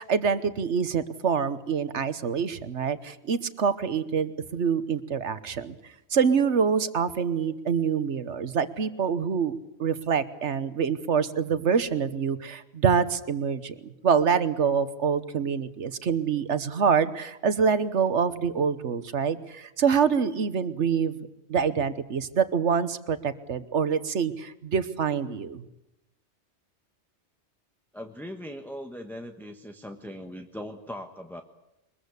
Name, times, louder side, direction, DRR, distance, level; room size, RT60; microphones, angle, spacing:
voice 1, 0.0-5.8 6.1-25.7, right 6 dB, 80° right, 13 dB, 1.4 m, -26 dB
voice 2, 27.9-31.4, equal, ahead, 5 dB, 1.2 m, -39 dB
23.0 x 21.5 x 8.2 m, 0.88 s
omnidirectional pair, 1.2 m